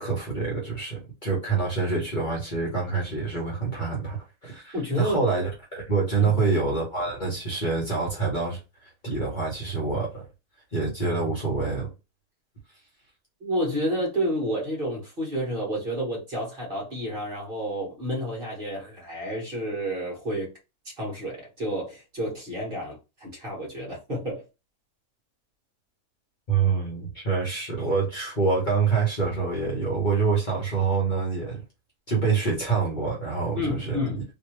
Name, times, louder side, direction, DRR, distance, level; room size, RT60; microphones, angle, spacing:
voice 1, 0.0-8.6 9.0-10.2 10.7-11.9 26.5-31.6 32.1-34.2, right 4 dB, 35° left, 1.1 m, -26 dB
voice 2, 4.7-5.2 6.2-6.4 13.4-20.5 21.0-24.4 33.5-34.2, equal, 40° right, 1.6 m, -30 dB
3.3 x 2.7 x 3.1 m
omnidirectional pair, 1.6 m